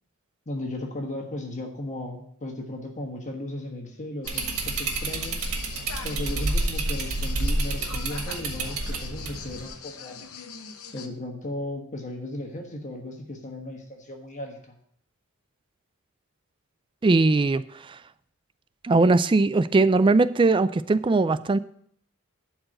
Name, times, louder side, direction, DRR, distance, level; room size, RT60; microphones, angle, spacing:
voice 1, 0.5-5.4 6.0-10.2 10.9-14.7, left 1 dB, 35° left, 2 dB, 1.4 m, -36 dB
sound 1, 4.2-11.1, left 6 dB, 65° left, 0.9 m, -42 dB
sound 2, 4.3-9.7, right 2 dB, 70° right, 1.7 m, -29 dB
voice 2, 17.0-18.0 18.8-21.6, right 3 dB, 20° right, 14 dB, 0.3 m, -20 dB
11.5 x 4.8 x 7.7 m, 0.65 s
head